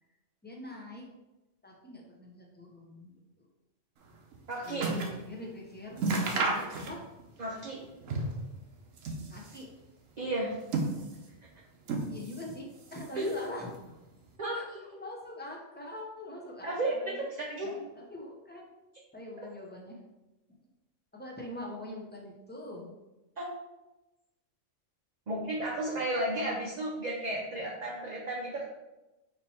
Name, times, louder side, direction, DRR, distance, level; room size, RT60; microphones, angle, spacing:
voice 1, 0.4-1.1 1.6-3.5 4.6-7.1 9.3-9.7 12.1-14.0 14.5-17.3 17.6-18.7 19.1-20.0 21.1-23.0, left 1 dB, 15° left, -1 dB, 0.4 m, -44 dB
sound 1, 4.1-5.2 5.6-5.7 6.0-7.3 7.5-8.5 8.9-9.7 10.3-11.4 11.8-12.5 12.8-13.6 14.3-14.4, right 3 dB, 80° right, 1.1 m, -33 dB
voice 2, 4.5-4.9 7.4-7.8 10.2-10.5 13.1-13.4 14.4-14.6 16.6-17.2 17.5-17.7 23.4-23.5 25.3-28.7, right 1 dB, 45° right, -3 dB, 0.6 m, -33 dB
4.5 x 2.8 x 4.2 m, 1.0 s
omnidirectional pair, 1.3 m